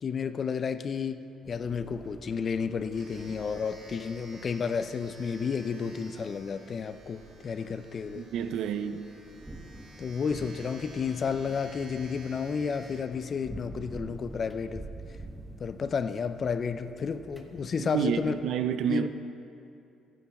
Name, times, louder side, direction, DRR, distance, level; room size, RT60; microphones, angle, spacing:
voice 1, 0.0-8.3 10.0-14.8 15.6-18.3 18.9-19.1, left 6 dB, 40° left, 0.5 m, -31 dB
sound 1, 1.4-18.4, right 1 dB, 10° right, 1.0 m, -48 dB
Domestic sounds home sounds, 1.9-14.4, right 2 dB, 55° right, 1.8 m, -53 dB
voice 2, 8.1-9.1 17.8-19.1, right 8 dB, 75° right, 0.5 m, -29 dB
14.0 x 9.9 x 4.2 m
cardioid pair, 110°, 0 cm